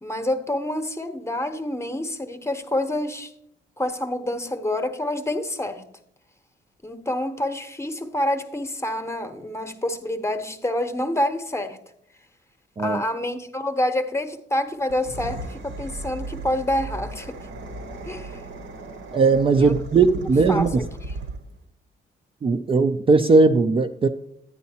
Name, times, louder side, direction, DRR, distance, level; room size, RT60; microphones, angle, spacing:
voice 1, 0.0-3.3 3.8-5.8 6.8-11.8 12.8-17.4 18.0-18.4 19.6-19.7 20.5-21.2, left 1 dB, 15° left, 0.9 m, -27 dB
sound 1, 14.8-21.6, right 2 dB, 75° right, 1.1 m, -36 dB
voice 2, 19.1-20.8 22.4-24.1, right 4 dB, 25° right, 0.4 m, -18 dB
10.5 x 9.4 x 2.8 m
cardioid pair, 90°, 20 cm